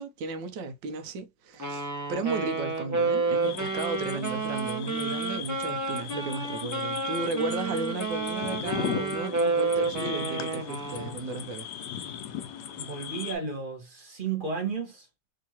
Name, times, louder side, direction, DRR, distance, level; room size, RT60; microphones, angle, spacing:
voice 1, 0.0-11.7, right 3 dB, 75° right, 1.4 m, -34 dB
Wind instrument woodwind instrument, 1.6-11.2, right 3 dB, 15° right, 0.5 m, -30 dB
sound 1, 3.4-13.4, left 9 dB, 75° left, 1.2 m, -38 dB
voice 2, 12.7-15.1, right 5 dB, 35° right, 1.1 m, -33 dB
3.6 x 2.8 x 2.8 m
omnidirectional pair, 2.0 m